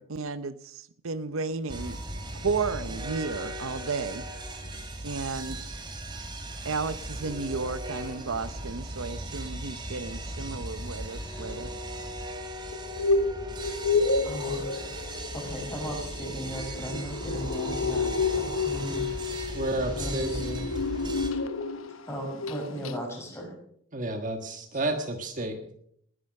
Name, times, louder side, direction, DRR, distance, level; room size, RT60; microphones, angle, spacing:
voice 1, 0.0-2.0 2.3-4.2 5.0-5.7 6.6-11.7, right 4 dB, 70° right, 0.7 m, -33 dB
sound 1, 1.7-21.3, right 1 dB, 20° right, 2.7 m, -38 dB
sound 2, 12.7-22.0 22.3-22.6 22.9-23.0, left 4 dB, 70° left, 1.2 m, -30 dB
voice 2, 14.2-15.1 15.3-19.1 20.0-20.4 22.1-23.5, equal, 10° left, 6.6 m, -36 dB
voice 3, 19.5-20.7 23.9-25.6, right 1 dB, 35° right, 1.5 m, -31 dB
19.5 x 11.0 x 6.5 m
head